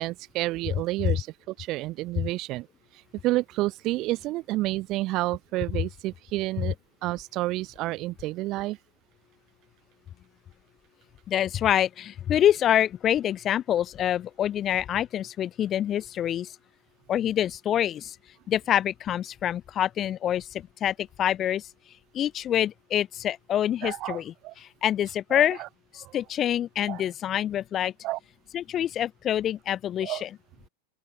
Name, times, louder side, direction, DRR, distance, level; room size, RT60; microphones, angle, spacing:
voice 1, 0.0-2.7 3.2-6.7 7.0-8.8 23.8-24.5 25.3-25.7 26.0-26.2 26.9-27.0 28.0-28.2 30.0-30.2, right 18 dB, 40° right, 5.9 m, -30 dB
voice 2, 11.3-16.5 17.1-18.2 18.5-21.7 22.1-25.6 25.9-27.9 28.5-30.3, left 11 dB, 30° left, 6.5 m, -26 dB
open air
figure-of-eight pair, 90°, 0 cm